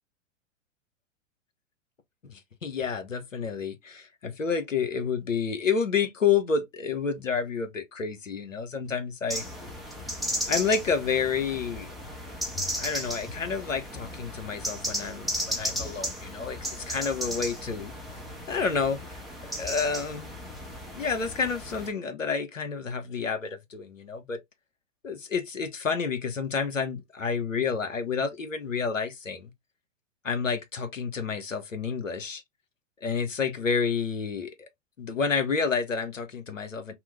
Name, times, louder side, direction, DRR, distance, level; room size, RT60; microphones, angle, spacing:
voice 1, 2.3-9.5 10.5-11.9 12.8-17.9 18.5-19.2 19.6-20.3 20.9-24.4 25.0-29.5 30.2-32.4 33.0-34.7 35.0-36.9, left 5 dB, 90° left, 0.8 m, -29 dB
sound 1, 9.3-21.9, equal, ahead, 0.4 m, -35 dB
2.9 x 2.0 x 3.1 m
figure-of-eight pair, 100°, 37 cm